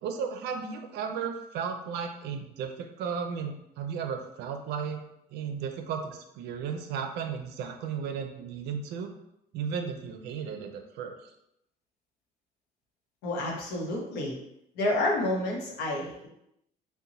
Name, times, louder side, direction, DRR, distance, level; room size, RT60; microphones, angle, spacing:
voice 1, 0.0-5.0 5.3-9.1 9.5-11.1, right 6 dB, 80° right, 5 dB, 0.4 m, -34 dB
voice 2, 13.2-14.3 14.7-16.3, left 1 dB, 85° left, -2 dB, 0.8 m, -29 dB
2.6 x 2.1 x 2.8 m, 0.81 s
cardioid pair, 110°, 17 cm